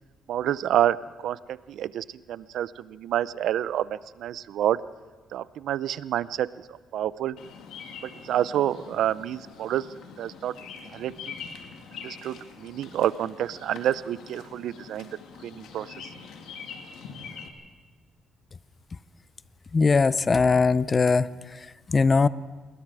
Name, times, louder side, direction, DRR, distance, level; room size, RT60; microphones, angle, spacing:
voice 1, 0.3-1.0 1.2-4.8 5.3-6.5 6.9-7.4 8.0-9.8 10.2-10.6 10.9-11.4 11.9-15.1 15.4-16.1, right 11 dB, 75° right, 17 dB, 0.6 m, -28 dB
Bird vocalization bird call bird song, 7.4-17.5, left 6 dB, 85° left, 2.2 m, -44 dB
voice 2, 19.7-21.3 21.9-22.3, left 4 dB, 30° left, 17 dB, 0.6 m, -20 dB
28.5 x 20.5 x 4.9 m, 1.3 s
cardioid pair, 90°, 0 cm